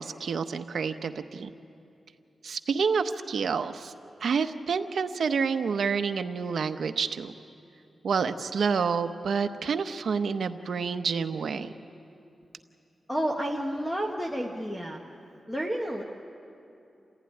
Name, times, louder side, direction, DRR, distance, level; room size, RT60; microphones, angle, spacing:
voice 1, 0.0-1.5 2.4-3.9 4.2-7.3 8.0-11.7, right 5 dB, 65° right, 9 dB, 0.9 m, -28 dB
voice 2, 13.1-15.0 15.5-16.0, equal, 5° left, 0 dB, 1.3 m, -30 dB
28.5 x 15.0 x 9.9 m, 2.7 s
wide cardioid pair, 160°, 0 cm